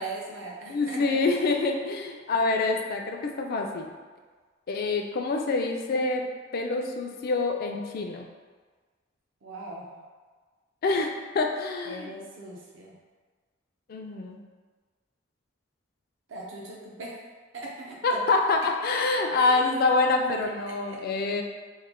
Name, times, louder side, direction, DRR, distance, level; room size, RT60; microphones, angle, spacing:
voice 1, 0.0-1.2 9.4-10.0 11.9-13.0 16.3-17.2 17.5-18.2 19.3-19.5 20.7-21.0, right 2 dB, 70° right, -3 dB, 0.6 m, -39 dB
voice 2, 0.7-3.9 4.7-6.3 6.5-8.3 10.8-12.1 13.9-14.4 18.0-21.4, left 3 dB, 50° left, 3 dB, 0.3 m, -26 dB
3.1 x 2.1 x 3.5 m, 1.4 s
head